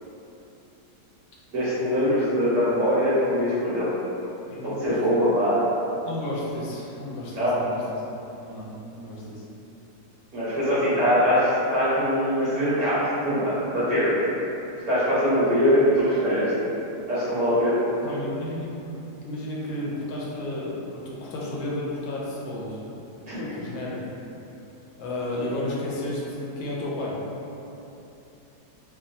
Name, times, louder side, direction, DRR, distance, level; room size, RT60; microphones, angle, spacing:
voice 1, 1.5-3.9 4.6-5.6 7.3-7.6 10.3-14.2 14.9-16.5 17.1-17.8 23.3-23.7, equal, 75° right, -12 dB, 1.3 m, -22 dB
voice 2, 4.5-5.0 6.1-8.0 8.4-9.4 18.0-18.7 19.2-22.8 23.5-24.0 25.0-27.2, left 1 dB, 75° left, -5 dB, 1.1 m, -32 dB
3.4 x 2.3 x 2.6 m, 2.9 s
omnidirectional pair, 1.7 m